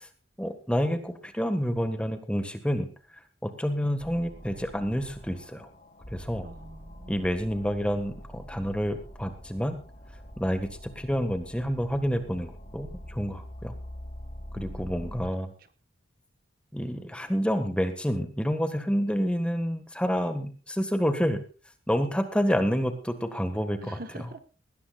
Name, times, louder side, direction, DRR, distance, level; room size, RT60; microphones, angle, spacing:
voice 1, 0.4-2.9 3.4-5.7 6.1-6.5 7.1-9.8 10.4-13.7 14.5-15.5 16.7-21.4 21.9-24.0, equal, 5° left, 8 dB, 1.6 m, -28 dB
sound 1, 4.0-15.3, equal, 40° left, 2.6 m, -44 dB
voice 2, 6.4-7.3 14.5-15.2 15.6-15.7 23.8-24.4, right 1 dB, 50° right, 9 dB, 1.4 m, -45 dB
20.0 x 17.5 x 2.4 m, 0.34 s
head